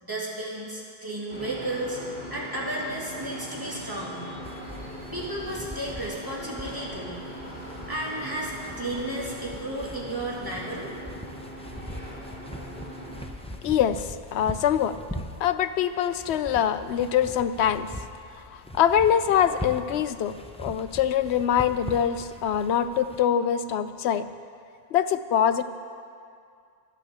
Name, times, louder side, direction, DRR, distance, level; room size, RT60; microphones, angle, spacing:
voice 1, 0.0-2.0 2.3-4.4 5.1-7.2 7.9-10.9, right 1 dB, 20° right, -5 dB, 2.4 m, -33 dB
sound 1, 1.3-13.2, equal, 60° left, 3.6 m, -40 dB
sound 2, 4.4-23.3, left 1 dB, 5° left, 0.6 m, -41 dB
voice 2, 13.6-15.0 15.4-17.9 18.5-24.3 24.9-25.6, left 9 dB, 90° left, 12 dB, 0.9 m, -24 dB
11.5 x 10.0 x 7.1 m, 2.3 s
omnidirectional pair, 1.1 m